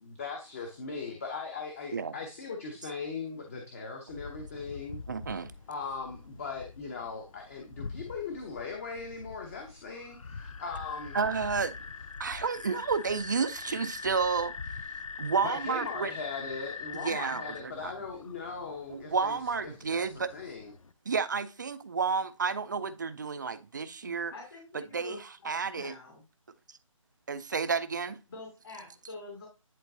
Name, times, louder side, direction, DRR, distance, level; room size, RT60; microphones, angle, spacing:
voice 1, 0.0-5.0 5.7-11.2 15.4-19.4 19.6-20.7, left 4 dB, 25° left, 0.9 m, -39 dB
sound 1, 4.1-20.9, left 5 dB, 70° left, 0.6 m, -43 dB
voice 2, 5.1-5.5 11.1-11.8 12.2-14.5 15.2-16.1 16.9-17.9 18.9-20.3 21.1-24.3 24.9-25.9 27.3-28.2, right 5 dB, 35° right, 0.5 m, -31 dB
voice 3, 24.0-26.2 28.3-29.5, left 2 dB, 40° left, 2.7 m, -46 dB
10.5 x 3.8 x 2.7 m
figure-of-eight pair, 160°, 18 cm